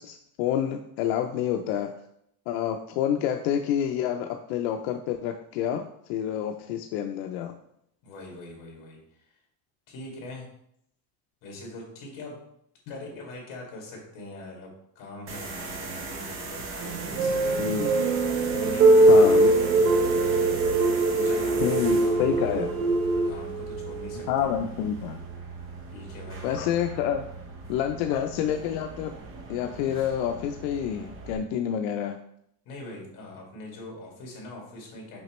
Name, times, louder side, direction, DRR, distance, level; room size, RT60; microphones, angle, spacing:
voice 1, 0.0-1.9 2.5-7.5 17.6-17.9 19.1-19.5 21.6-22.7 24.3-25.2 26.4-27.2 27.7-29.1 29.5-32.2, left 9 dB, 85° left, 6 dB, 0.6 m, -28 dB
voice 2, 8.0-9.4 9.9-10.4 11.4-12.4 12.9-17.6 18.5-19.5 21.1-22.7 23.2-24.3 25.9-26.5 32.6-35.2, left 2 dB, 50° left, -1 dB, 2.3 m, -42 dB
sound 1, 15.3-31.4, right 3 dB, 30° right, 0.8 m, -38 dB
sound 2, 16.8-23.3, right 2 dB, 85° right, 0.8 m, -21 dB
Wind instrument woodwind instrument, 17.4-24.5, right 12 dB, 60° right, 0.5 m, -37 dB
6.2 x 5.1 x 3.1 m, 0.73 s
cardioid pair, 175°, 43 cm